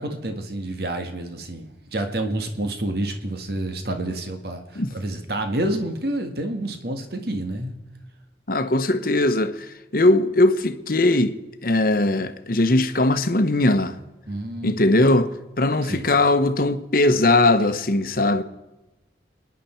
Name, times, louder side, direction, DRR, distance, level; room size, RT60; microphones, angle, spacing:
voice 1, 0.0-7.7 14.3-14.9 15.9-16.1, right 1 dB, 55° right, 1.6 m, -29 dB
voice 2, 8.5-9.5 9.9-11.4 11.6-14.0 14.6-15.3 15.6-18.4, left 2 dB, 50° left, 0.9 m, -19 dB
29.5 x 10.5 x 4.4 m
head